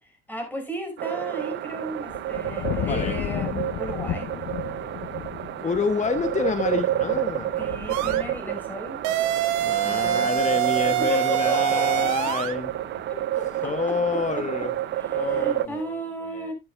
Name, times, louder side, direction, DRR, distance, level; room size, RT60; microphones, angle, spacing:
voice 1, 0.0-4.3 7.6-9.0 9.8-10.4 10.9-11.9 13.1-14.0 14.4-14.5 15.0-16.5, right 1 dB, 5° left, 5.6 m, -35 dB
sound 1, 1.0-15.7, right 13 dB, 35° right, 0.5 m, -30 dB
sound 2, 1.5-15.7, left 11 dB, 50° left, 0.9 m, -37 dB
voice 2, 2.9-3.2 5.6-7.5 9.6-12.7 13.6-14.7 15.1-16.0 16.3-16.5, left 5 dB, 20° left, 1.1 m, -28 dB
sound 3, 7.9-8.2 9.0-12.6, right 14 dB, 60° right, 1.1 m, -25 dB
12.5 x 9.5 x 2.3 m
hypercardioid pair, 75°, 32 cm